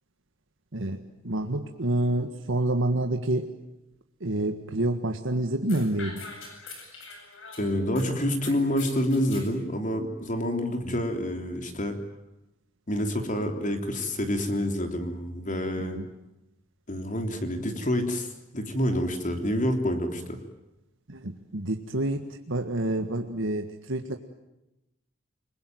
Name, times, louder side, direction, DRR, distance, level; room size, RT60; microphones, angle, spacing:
voice 1, 1.2-3.5 4.2-6.2 15.8-16.1 21.1-24.2, right 1 dB, 65° right, 5 dB, 1.7 m, -28 dB
sound 1, 5.7-8.1 8.4-9.5, left 4 dB, 65° left, 8.0 m, -43 dB
voice 2, 7.6-12.0 12.9-16.0 16.9-20.4, equal, 40° left, 5 dB, 3.4 m, -28 dB
29.5 x 21.5 x 9.3 m, 0.91 s
head